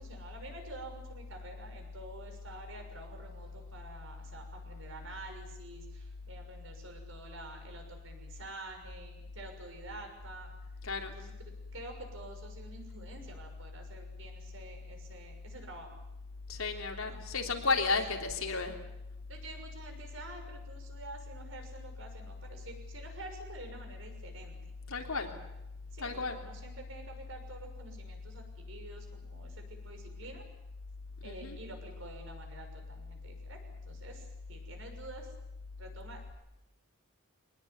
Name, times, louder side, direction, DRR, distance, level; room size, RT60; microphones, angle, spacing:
voice 1, 0.0-10.5 11.1-16.0 17.0-17.1 17.9-18.0 19.3-24.5 25.9-30.5 31.2-35.3 35.8-36.3, right 2 dB, 65° right, 4 dB, 6.4 m, -48 dB
voice 2, 16.5-18.8 24.9-25.3 26.0-26.4 31.2-31.6, left 4 dB, 90° left, 3 dB, 3.5 m, -33 dB
24.5 x 19.0 x 9.5 m, 0.90 s
head